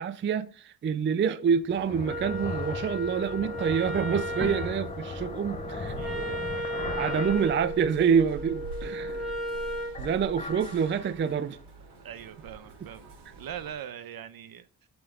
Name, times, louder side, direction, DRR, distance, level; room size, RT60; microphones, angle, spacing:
voice 1, 0.0-6.6 6.9-9.2 10.0-11.6, right 7 dB, 30° right, 0.4 m, -27 dB
sound 1, 1.5-8.3 8.7-9.5 9.9-11.6, left 4 dB, 20° left, 0.7 m, -39 dB
sound 2, 1.7-13.7, right 3 dB, 80° right, 4.3 m, -46 dB
Wind instrument woodwind instrument, 2.0-10.0, equal, ahead, 1.9 m, -35 dB
voice 2, 6.6-6.9 9.1-9.3 12.0-14.7, right 9 dB, 65° right, 0.9 m, -42 dB
7.8 x 6.1 x 4.9 m
wide cardioid pair, 170°, 39 cm